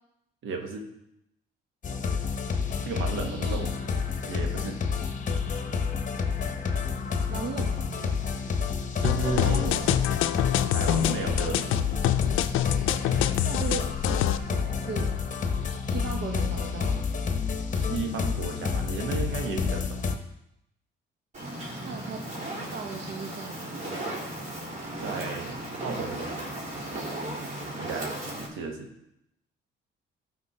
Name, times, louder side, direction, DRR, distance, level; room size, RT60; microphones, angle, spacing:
voice 1, 0.4-0.9 2.8-3.7 4.2-4.8 9.0-9.7 10.6-11.8 17.7-20.0 25.0-26.3 27.8-28.1 28.5-28.9, right 4 dB, 80° right, 3 dB, 1.4 m, -34 dB
sound 1, 1.8-20.1, left 5 dB, 40° left, 1.0 m, -29 dB
voice 2, 3.2-3.7 7.3-8.2 9.2-9.9 13.4-15.1 15.8-17.0 21.8-22.2 22.7-24.2, right 5 dB, 60° right, 2 dB, 0.9 m, -37 dB
sound 2, 9.0-14.4, left 12 dB, 90° left, 0.4 m, -26 dB
Fire, 21.3-28.5, right 1 dB, 40° right, 3.9 m, -36 dB
13.0 x 4.5 x 4.3 m, 0.83 s
cardioid pair, 90°, 20 cm